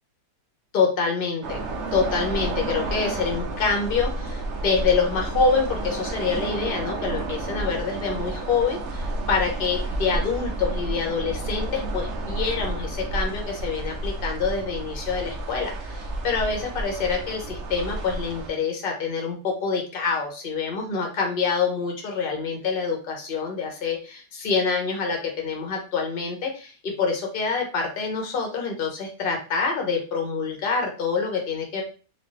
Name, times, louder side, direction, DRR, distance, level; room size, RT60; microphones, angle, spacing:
voice 1, 0.7-1.6 1.9-31.8, left 5 dB, 40° left, 2 dB, 0.9 m, -26 dB
sound 1, 1.4-18.5, right 2 dB, 65° right, 0.7 m, -31 dB
4.2 x 2.4 x 3.1 m, 0.36 s
omnidirectional pair, 1.8 m